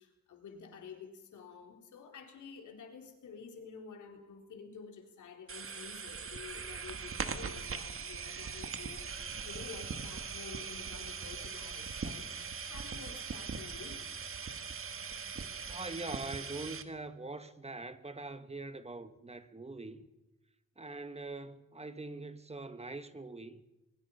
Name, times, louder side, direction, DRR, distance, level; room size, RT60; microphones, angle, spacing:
voice 1, 0.0-14.0, left 5 dB, 90° left, 3.9 m, -50 dB
sound 1, 5.5-16.8, right 5 dB, 45° right, 1.7 m, -41 dB
voice 2, 15.7-20.1 20.8-23.6, right 2 dB, 20° right, 1.4 m, -43 dB
23.5 x 22.5 x 5.6 m
cardioid pair, 85°, 29 cm